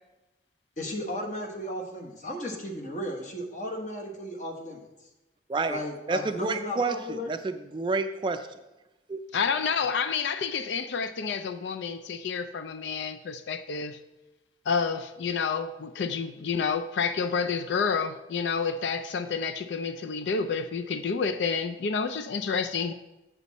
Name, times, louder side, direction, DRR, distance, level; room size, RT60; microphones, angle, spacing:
voice 1, 0.8-4.8 5.7-7.3, left 1 dB, 45° left, 1.2 m, -35 dB
voice 2, 6.1-8.5 9.1-9.2, right 3 dB, 25° right, 0.3 m, -29 dB
voice 3, 9.3-14.0 14.7-22.9, left 5 dB, 80° left, 0.4 m, -29 dB
7.2 x 6.9 x 4.1 m
head